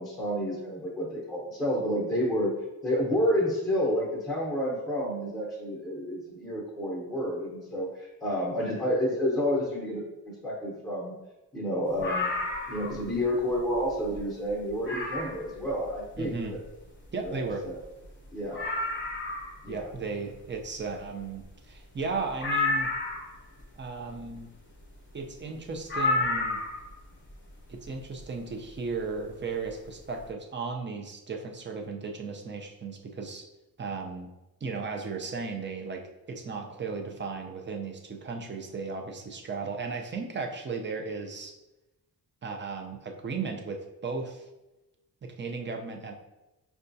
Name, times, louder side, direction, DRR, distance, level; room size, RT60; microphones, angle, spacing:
voice 1, 0.0-2.5 2.8-11.1 11.5-12.3 12.7-16.6 17.2-17.8 18.3-18.6 19.6-19.9, equal, ahead, -5 dB, 0.8 m, -30 dB
sound 1, 12.0-13.1 13.5-13.6 14.1-14.2 14.9-15.5 17.2-17.3 17.5-17.6 18.0-18.1 18.5-19.6 22.4-23.3 25.9-26.9 28.2-28.3, left 3 dB, 30° left, 0.8 m, -30 dB
voice 2, 16.2-16.5 17.1-17.6 19.7-22.9 23.8-24.5 25.1-26.6 27.7-33.5 33.8-34.3 34.6-36.0 36.3-41.5 42.4-44.5 45.2-46.1, right 4 dB, 30° right, 2 dB, 0.4 m, -35 dB
5.4 x 2.3 x 2.6 m, 1.0 s
wide cardioid pair, 130°, 38 cm